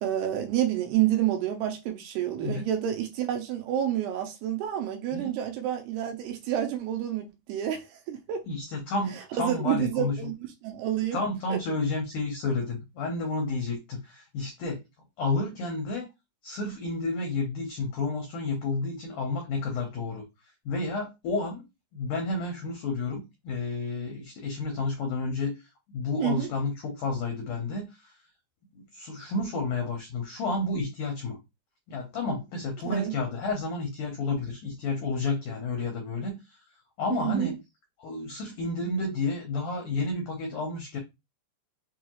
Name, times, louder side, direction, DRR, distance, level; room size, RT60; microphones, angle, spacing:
voice 1, 0.0-8.4 9.4-10.4 10.6-11.2 11.5-11.6 26.2-26.5 32.8-33.1 37.1-37.6, right 11 dB, 80° right, 2.5 m, -29 dB
voice 2, 8.5-10.2 11.1-14.8 15.2-16.1 16.4-20.2 20.7-25.6 25.9-28.1 28.8-31.4 31.9-36.4 37.0-37.6 38.0-41.0, left 3 dB, 80° left, 1.8 m, -31 dB
6.3 x 2.3 x 3.0 m
omnidirectional pair, 4.9 m